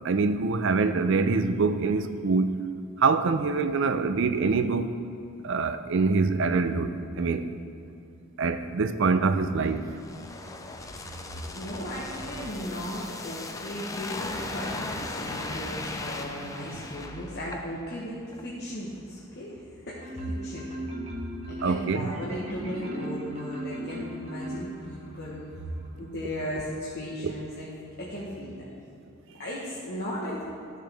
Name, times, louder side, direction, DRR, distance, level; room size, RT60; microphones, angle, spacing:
voice 1, 0.0-2.7 3.0-4.9 5.4-7.5 8.4-9.8 21.6-22.1 27.2-27.3, right 4 dB, 60° right, 0.5 m, -25 dB
sound 1, 9.6-18.0 18.3-18.5, left 2 dB, 15° left, 0.5 m, -37 dB
voice 2, 11.5-20.7 21.5-25.5 26.0-27.7 28.0-28.7 29.4-30.4, equal, 50° left, 1.3 m, -36 dB
Marimba xylophone, 20.0-25.2, equal, 30° right, 1.3 m, -37 dB
13.5 x 6.5 x 3.5 m
head